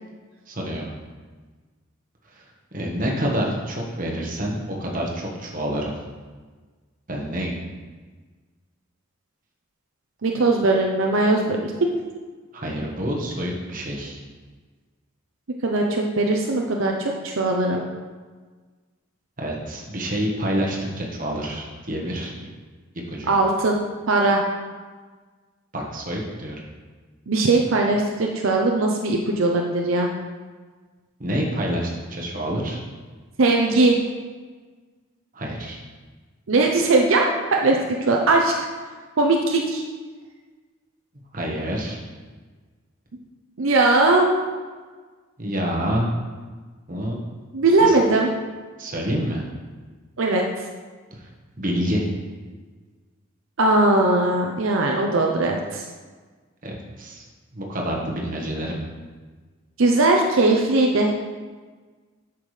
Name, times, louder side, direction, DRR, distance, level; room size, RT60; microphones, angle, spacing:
voice 1, 0.5-0.9 2.3-2.4 2.7-6.0 7.1-7.5 12.5-14.2 19.4-22.3 23.1-23.3 25.7-26.6 31.2-32.8 35.3-35.8 41.3-42.0 45.4-46.1 46.9-47.2 47.8-47.9 48.8-49.4 51.2-51.3 51.6-52.1 56.6-57.2 57.5-58.8, equal, 40° right, -2 dB, 1.3 m, -27 dB
voice 2, 10.2-11.9 15.6-17.8 23.3-23.8 24.1-24.4 27.3-30.1 33.4-34.0 36.5-37.2 37.5-38.5 39.2-39.8 43.6-44.3 47.5-48.3 50.2-50.4 53.6-55.8 59.8-61.1, right 2 dB, 75° right, 1 dB, 0.7 m, -19 dB
8.7 x 5.9 x 3.3 m, 1.4 s
head